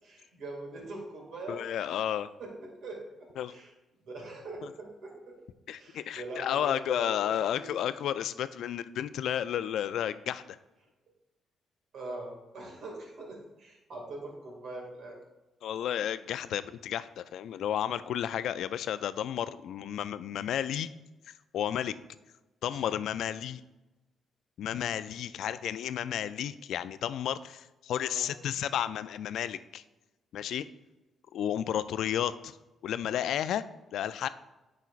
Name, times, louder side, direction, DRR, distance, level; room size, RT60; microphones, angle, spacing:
voice 1, 0.0-2.0 2.4-3.7 4.0-5.3 5.7-7.7 11.9-15.2 22.7-22.9 28.0-28.3, right 2 dB, 70° right, 0 dB, 2.1 m, -42 dB
voice 2, 1.5-2.3 3.4-3.5 5.7-10.6 15.6-20.9 21.5-21.9 22.6-23.6 24.6-29.8 30.3-30.7 31.3-32.6 32.8-33.6 33.9-34.3, left 10 dB, 70° left, 14 dB, 0.3 m, -32 dB
9.2 x 5.8 x 2.5 m, 1.1 s
hypercardioid pair, 45°, 0 cm